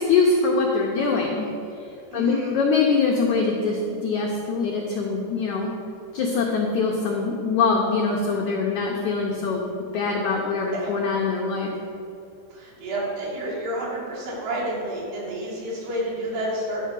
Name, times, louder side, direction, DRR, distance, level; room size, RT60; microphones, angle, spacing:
voice 1, 0.1-1.5 2.1-5.7 6.1-9.7 9.9-11.7, left 4 dB, 85° left, -1 dB, 1.7 m, -23 dB
voice 2, 2.1-2.5 10.7-10.9 12.5-16.8, right 1 dB, 80° right, -5 dB, 4.4 m, -29 dB
11.5 x 4.6 x 7.5 m, 2.7 s
omnidirectional pair, 4.6 m